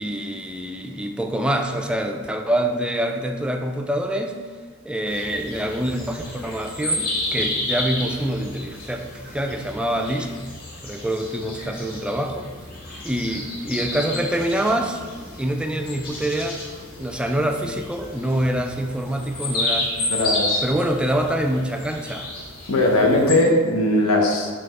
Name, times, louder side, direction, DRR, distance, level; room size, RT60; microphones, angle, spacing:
voice 1, 0.0-4.4 4.8-10.3 10.8-12.5 13.0-15.0 15.4-16.6 17.0-19.9 20.6-22.3, right 1 dB, 5° right, 4 dB, 0.4 m, -25 dB
sound 1, 5.1-23.4, left 2 dB, 45° left, 1.7 m, -31 dB
voice 2, 20.1-20.6 22.7-24.5, left 1 dB, 75° left, 1 dB, 0.9 m, -19 dB
5.6 x 3.4 x 5.3 m, 1.5 s
head